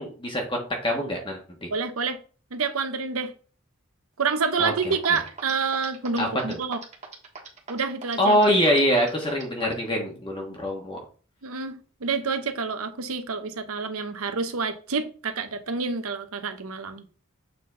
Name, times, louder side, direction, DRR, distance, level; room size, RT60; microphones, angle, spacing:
voice 1, 0.0-1.7 4.6-5.0 6.2-6.6 8.2-11.0, equal, 25° left, 1.4 m, -24 dB
voice 2, 1.7-2.2 2.5-3.3 4.2-6.8 7.7-8.4 11.4-17.0, right 5 dB, 80° right, 0.9 m, -28 dB
sound 1, 4.9-9.9, right 5 dB, 30° right, 1.5 m, -39 dB
7.1 x 4.0 x 3.9 m
head